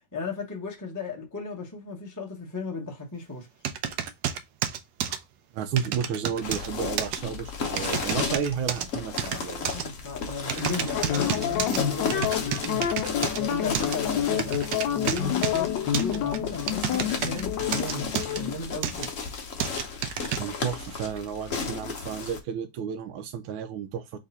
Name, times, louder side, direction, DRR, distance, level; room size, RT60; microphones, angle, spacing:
voice 1, 0.1-3.5 8.2-8.4 9.6-12.9 13.3-19.1, left 3 dB, 15° left, 0.6 m, -35 dB
sound 1, 3.6-5.2 5.8-6.7 7.0-7.2 7.8-8.9 9.2-9.8 10.5-11.8 12.1-13.4 13.7-14.0 14.4-15.6 15.9-17.4 17.7-18.4 18.8-19.1 19.6-20.4, right 9 dB, 70° right, 1.1 m, -30 dB
voice 2, 5.5-9.6 20.3-24.2, right 7 dB, 85° right, 1.4 m, -32 dB
sound 2, 6.4-22.4, left 5 dB, 55° left, 1.0 m, -34 dB
sound 3, 10.9-18.5, left 10 dB, 70° left, 1.2 m, -28 dB
3.7 x 3.2 x 4.0 m
omnidirectional pair, 2.2 m